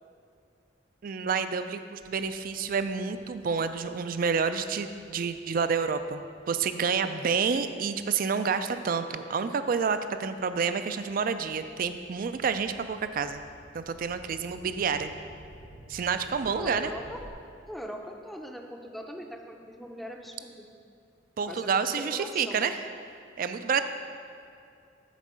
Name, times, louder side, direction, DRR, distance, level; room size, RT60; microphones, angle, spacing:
voice 1, 1.0-13.4 13.7-15.1 15.9-16.9 21.4-22.8 23.4-23.8, right 5 dB, 50° right, 10 dB, 0.4 m, -29 dB
sound 1, 2.0-8.7 9.3-17.3, right 1 dB, 70° right, 0.8 m, -54 dB
voice 2, 16.4-17.2 17.7-20.7 21.5-22.6, equal, ahead, 3 dB, 0.5 m, -41 dB
8.2 x 4.4 x 6.2 m, 2.4 s
head